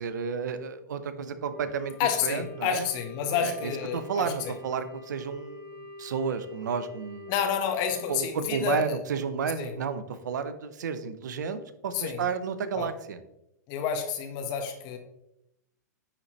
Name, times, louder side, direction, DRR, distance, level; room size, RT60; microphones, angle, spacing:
voice 1, 0.0-2.0 2.2-2.9 3.3-7.3 8.1-13.2, right 6 dB, 75° right, 11 dB, 0.7 m, -32 dB
Wind instrument woodwind instrument, 1.5-8.2, left 3 dB, 25° left, 2.3 m, -45 dB
voice 2, 2.0-4.5 7.3-9.0 9.6-9.7 11.9-12.2 12.8-12.9 13.7-15.0, left 7 dB, 45° left, 6 dB, 1.3 m, -29 dB
10.0 x 4.3 x 3.1 m, 0.85 s
hypercardioid pair, 115°, 10 cm